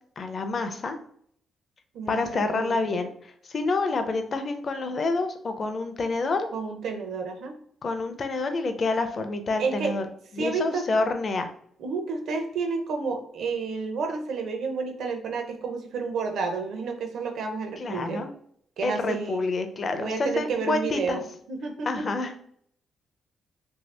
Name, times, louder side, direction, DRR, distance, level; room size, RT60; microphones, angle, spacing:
voice 1, 0.2-1.0 2.1-6.5 7.8-10.0 10.3-11.5 17.8-18.3 18.8-21.2 21.8-22.4, left 3 dB, 35° left, 7 dB, 0.4 m, -28 dB
voice 2, 1.9-2.8 6.5-7.6 9.6-10.0 10.4-10.8 11.8-18.2 18.8-19.4 20.0-21.2 21.5-22.1, right 4 dB, 65° right, 4 dB, 0.6 m, -30 dB
2.8 x 2.7 x 3.2 m, 0.64 s
cardioid pair, 145°, 0 cm